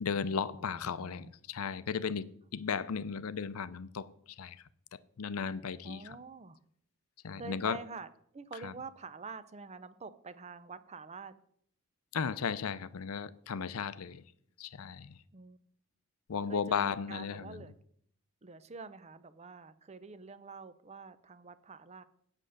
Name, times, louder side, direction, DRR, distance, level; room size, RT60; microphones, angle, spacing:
voice 1, 0.0-4.1 4.4-4.6 5.2-6.0 7.2-7.8 8.6-8.7 12.1-14.2 14.6-15.1 16.3-17.6, left 6 dB, 80° left, 0.5 m, -35 dB
voice 2, 0.6-1.3 5.8-6.6 7.3-11.4 15.3-15.6 16.5-17.8 18.4-22.0, right 4 dB, 30° right, 0.6 m, -47 dB
8.2 x 7.8 x 6.5 m
head